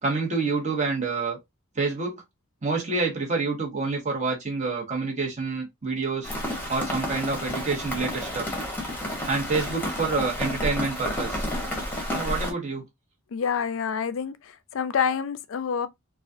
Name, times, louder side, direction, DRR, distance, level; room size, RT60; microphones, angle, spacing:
voice 1, 0.0-1.4 1.7-2.2 2.6-6.3 6.7-8.5 9.3-11.4 12.1-12.8, right 4 dB, 35° right, 1.2 m, -27 dB
Rain, 6.2-12.5, left 1 dB, 10° left, 1.0 m, -31 dB
voice 2, 13.3-15.9, left 7 dB, 60° left, 0.4 m, -27 dB
4.1 x 2.4 x 2.6 m
head